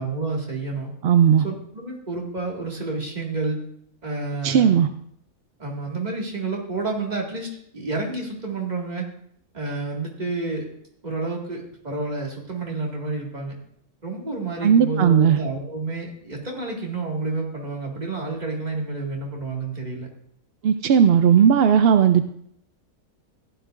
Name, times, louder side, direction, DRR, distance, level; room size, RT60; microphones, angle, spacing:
voice 1, 0.0-0.9 1.4-3.6 4.0-4.7 5.6-9.1 9.5-10.7 11.0-13.6 14.0-20.1, right 3 dB, 30° right, -2 dB, 2.1 m, -29 dB
voice 2, 1.0-1.4 4.4-4.9 14.6-15.4 20.6-22.2, right 8 dB, 65° right, 9 dB, 0.6 m, -16 dB
15.0 x 10.5 x 2.5 m, 0.68 s
omnidirectional pair, 1.5 m